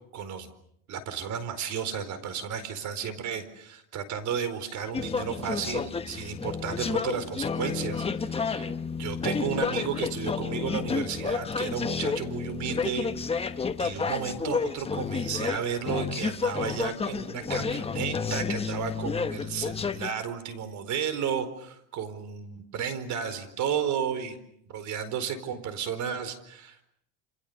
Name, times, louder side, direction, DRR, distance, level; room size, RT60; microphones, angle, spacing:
voice 1, 0.1-0.5 0.9-8.7 9.0-13.1 13.8-24.4 24.7-26.9, right 7 dB, 45° right, 12 dB, 4.6 m, -33 dB
sound 1, 4.9-20.1, left 5 dB, 15° left, 1.3 m, -31 dB
28.5 x 28.0 x 6.9 m, 0.72 s
supercardioid pair, 125°, 41 cm